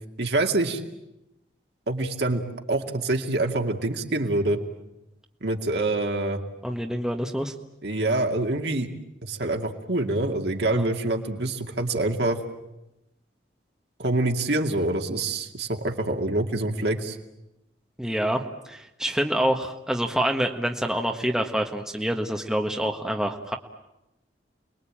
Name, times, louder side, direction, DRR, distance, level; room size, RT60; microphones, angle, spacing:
voice 1, 0.2-0.8 1.9-4.6 5.4-6.4 7.8-8.9 9.2-12.4 14.0-17.2, right 2 dB, 65° right, 3 dB, 2.4 m, -26 dB
voice 2, 6.6-7.5 10.7-10.9 18.0-23.6, right 1 dB, 5° right, 2 dB, 1.5 m, -27 dB
30.0 x 21.0 x 8.8 m, 0.92 s
head